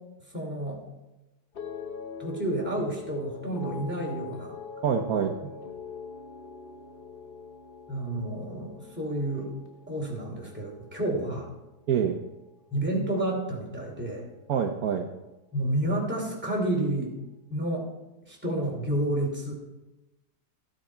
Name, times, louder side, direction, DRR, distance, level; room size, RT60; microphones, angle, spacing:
voice 1, 0.3-0.8 2.2-4.6 7.9-9.5 9.9-11.5 12.7-14.3 15.5-17.1 17.5-17.9 18.3-19.5, right 1 dB, 5° right, -2 dB, 2.6 m, -30 dB
sound 1, 1.5-11.9 12.2-12.8, left 5 dB, 40° left, 0.8 m, -43 dB
voice 2, 4.8-5.5 11.9-12.2 14.5-15.1, right 7 dB, 65° right, 3 dB, 1.2 m, -26 dB
14.0 x 9.4 x 4.5 m, 1.0 s
omnidirectional pair, 1.9 m